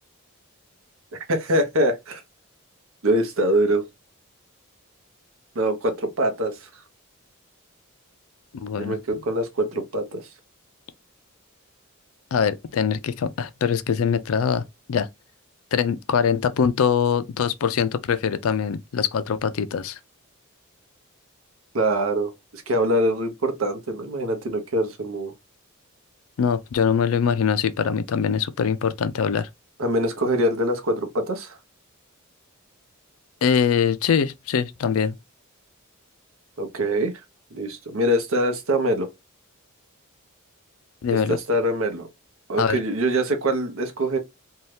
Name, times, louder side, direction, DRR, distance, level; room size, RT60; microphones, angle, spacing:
voice 1, 1.1-2.2 3.0-3.8 5.5-6.7 8.8-10.2 21.7-25.3 29.8-31.6 36.6-37.1 37.5-39.1 41.1-41.2 41.5-42.1 42.5-44.2, right 1 dB, 70° right, 0.8 m, -24 dB
voice 2, 8.5-9.0 12.3-14.6 14.9-15.1 15.7-20.0 26.4-29.5 33.4-35.2 41.0-41.4 42.6-42.8, left 7 dB, 75° left, 0.4 m, -23 dB
2.7 x 2.3 x 3.2 m
head